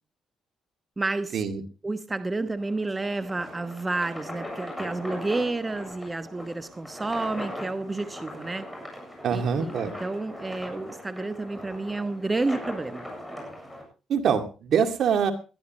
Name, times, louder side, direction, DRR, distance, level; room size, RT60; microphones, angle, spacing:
voice 1, 1.0-1.4 1.8-8.7 9.3-9.7 10.0-13.1, right 2 dB, 20° right, 10 dB, 1.1 m, -30 dB
sound 1, 2.6-13.8, equal, ahead, 7.9 m, -39 dB
voice 2, 9.2-9.9 14.1-15.3, right 7 dB, 65° right, 7 dB, 2.2 m, -24 dB
21.0 x 12.5 x 3.1 m, 0.32 s
cardioid pair, 90°, 0 cm